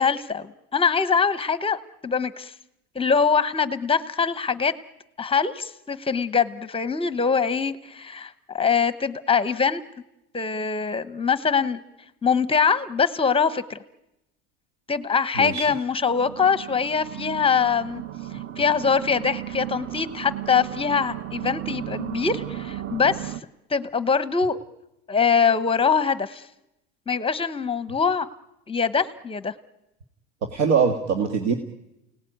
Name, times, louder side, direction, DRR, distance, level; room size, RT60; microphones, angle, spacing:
voice 1, 0.0-2.5 2.9-4.7 5.2-9.8 10.3-11.8 12.2-13.8 14.9-18.0 18.6-23.3 23.7-24.6 25.1-26.4 27.1-28.3 28.7-29.5, left 6 dB, 15° left, 14 dB, 0.9 m, -23 dB
voice 2, 15.4-15.7 30.5-31.5, right 6 dB, 85° right, 5 dB, 2.3 m, -22 dB
sound 1, 16.1-23.4, right 12 dB, 40° right, 0.9 m, -35 dB
28.5 x 18.5 x 9.3 m, 0.93 s
supercardioid pair, 125°, 36 cm